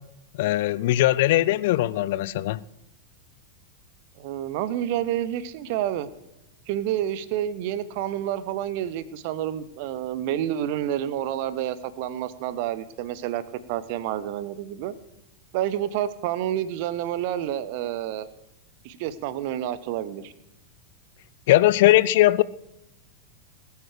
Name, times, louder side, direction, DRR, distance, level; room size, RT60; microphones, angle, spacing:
voice 1, 0.4-2.6 21.5-22.4, left 15 dB, 50° left, 0.5 m, -20 dB
voice 2, 4.2-6.1 6.7-13.4 13.7-14.9 15.5-18.3 18.8-20.3, right 11 dB, 50° right, 0.9 m, -29 dB
20.0 x 8.2 x 5.0 m
figure-of-eight pair, 90°, 0 cm